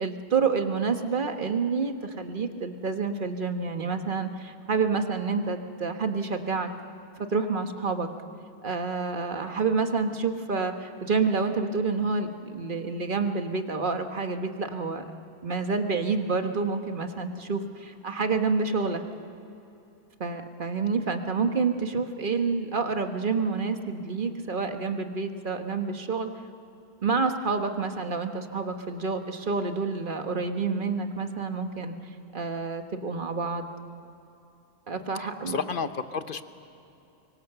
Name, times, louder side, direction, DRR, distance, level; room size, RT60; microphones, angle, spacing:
voice 1, 0.0-6.7 7.2-8.1 8.6-15.0 15.4-19.0 20.2-26.3 27.0-32.0 32.3-33.7 34.9-35.6, right 4 dB, 40° right, 6 dB, 1.4 m, -28 dB
voice 2, 35.2-36.4, left 5 dB, 45° left, 10 dB, 0.9 m, -32 dB
25.0 x 23.5 x 6.8 m, 2.8 s
omnidirectional pair, 1.3 m